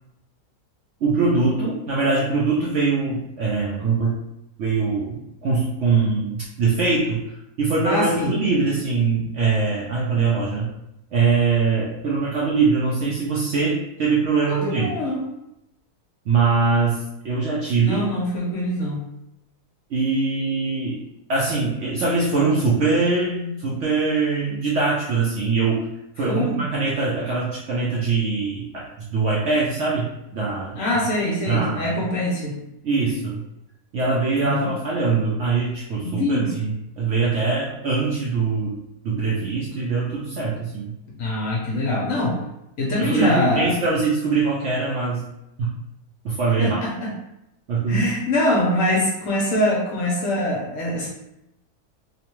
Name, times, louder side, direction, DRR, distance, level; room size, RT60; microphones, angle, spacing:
voice 1, 1.0-4.2 4.6-10.7 11.1-15.0 16.3-18.0 19.9-21.0 21.3-25.8 26.2-28.8 29.1-30.8 31.5-32.0 32.8-33.4 33.9-38.8 39.0-40.9 43.0-45.2 45.6-45.7 46.2-46.8 47.7-48.0, right 4 dB, 65° right, -5 dB, 0.7 m, -22 dB
voice 2, 7.8-8.3 14.5-15.3 17.8-19.0 26.3-26.6 30.7-32.6 34.4-34.7 36.0-36.5 41.2-42.4 42.8-43.7 46.6-47.1 47.9-51.1, left 1 dB, 65° left, -3 dB, 0.9 m, -23 dB
2.9 x 2.1 x 2.9 m, 0.86 s
omnidirectional pair, 1.7 m